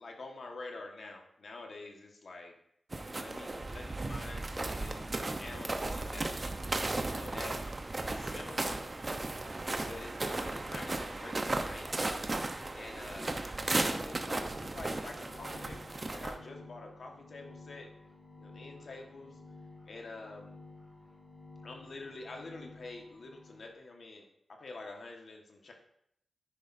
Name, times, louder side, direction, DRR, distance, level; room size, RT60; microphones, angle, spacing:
voice 1, 0.0-2.5 3.2-6.4 7.0-7.6 8.1-8.8 9.7-11.9 12.7-13.4 13.7-17.9 18.4-19.4 19.9-20.5 21.6-25.7, left 3 dB, 65° left, 2 dB, 1.5 m, -47 dB
sound 1, 2.9-16.4, right 2 dB, 35° right, 0.9 m, -35 dB
sound 2, 14.1-23.7, left 2 dB, 20° left, 3.0 m, -53 dB
10.0 x 10.0 x 2.7 m, 0.74 s
wide cardioid pair, 95°, 0 cm